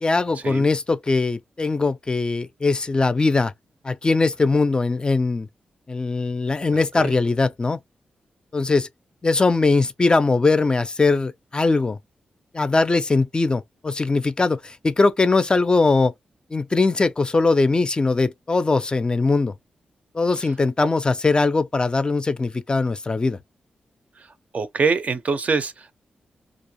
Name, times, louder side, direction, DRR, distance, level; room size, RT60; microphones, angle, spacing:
voice 1, 0.0-3.5 3.8-5.5 5.9-7.8 8.5-8.9 9.2-12.0 12.5-16.1 16.5-19.5 20.1-23.4, left 3 dB, 30° left, 0.4 m, -21 dB
voice 2, 6.7-7.1 24.5-25.9, right 4 dB, 50° right, 0.5 m, -24 dB
2.4 x 2.1 x 2.9 m
cardioid pair, 80°, 3 cm